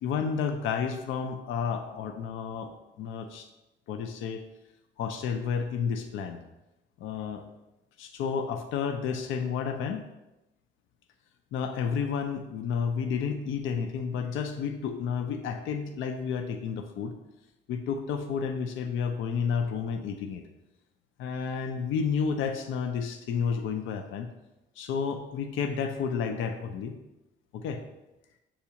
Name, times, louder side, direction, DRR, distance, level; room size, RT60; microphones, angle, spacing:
voice 1, 0.0-3.5 3.9-4.4 5.0-6.4 7.0-7.4 8.0-10.1 11.5-17.1 17.7-20.4 21.2-24.3 24.8-27.0 27.5-27.8, left 6 dB, 80° left, 6 dB, 0.5 m, -31 dB
6.9 x 2.4 x 2.8 m, 0.95 s
cardioid pair, 90°, 20 cm